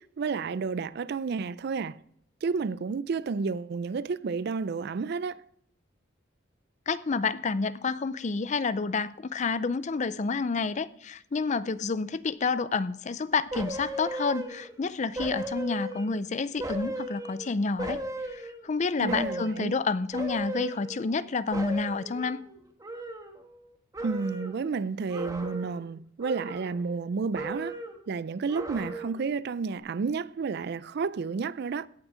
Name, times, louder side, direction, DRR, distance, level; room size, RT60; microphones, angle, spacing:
voice 1, 0.0-2.0 2.4-5.4 19.0-19.8 24.0-27.8 28.1-31.9, right 5 dB, 60° right, 0.4 m, -31 dB
voice 2, 6.9-18.0 18.3-22.4, left 4 dB, 40° left, 0.5 m, -29 dB
sound 1, 13.5-14.8 15.2-16.2 16.6-18.7 19.1-19.7 20.1-21.3 21.5-23.7 23.9-24.6 25.1-25.9 26.2-27.1 27.3-28.1 28.5-29.3 29.7-29.8, right 1 dB, 20° right, 1.3 m, -37 dB
17.0 x 6.2 x 5.0 m
head